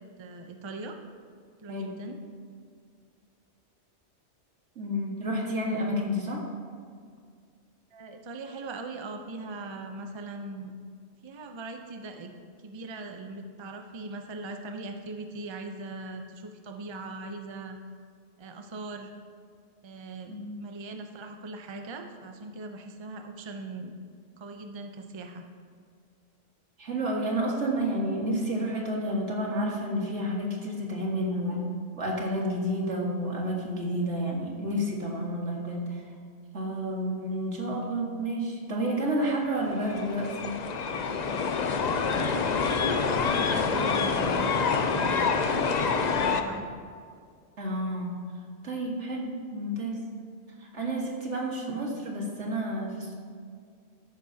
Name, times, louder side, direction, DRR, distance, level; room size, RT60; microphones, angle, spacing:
voice 1, 0.2-1.0 1.6-2.2 7.9-10.7 11.2-12.3 12.6-17.8 18.4-19.1 19.8-23.9 24.4-25.4 42.2-45.5 46.0-46.7, right 2 dB, 30° right, 4 dB, 0.6 m, -40 dB
voice 2, 4.8-6.4 20.3-20.6 26.8-31.7 32.0-36.0 36.5-40.5 47.6-48.1 48.6-50.0 50.6-53.1, equal, 75° right, -1 dB, 2.0 m, -30 dB
sound 1, 39.6-46.4, left 5 dB, 45° left, 0.6 m, -27 dB
13.0 x 10.5 x 2.8 m, 2.1 s
omnidirectional pair, 1.2 m